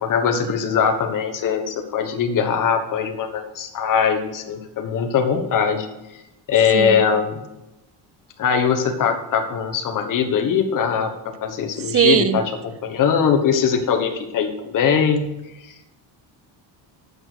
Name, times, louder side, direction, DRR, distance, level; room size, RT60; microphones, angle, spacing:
voice 1, 0.0-5.9 6.1-6.2 6.5-7.4 8.4-15.3 15.6-15.7, left 7 dB, 45° left, 5 dB, 1.3 m, -21 dB
voice 2, 11.9-12.4, right 9 dB, 35° right, 14 dB, 0.4 m, -18 dB
8.7 x 6.4 x 6.8 m, 0.94 s
cardioid pair, 175°, 46 cm